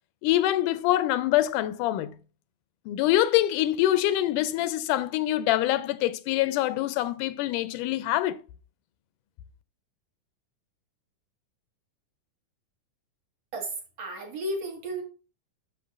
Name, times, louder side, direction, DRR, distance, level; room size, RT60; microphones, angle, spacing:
voice 1, 0.2-2.1 2.9-8.4, left 14 dB, 85° left, 2.1 m, -25 dB
voice 2, 13.5-15.0, right 1 dB, 55° right, 2.7 m, -33 dB
11.5 x 6.3 x 2.4 m
omnidirectional pair, 3.6 m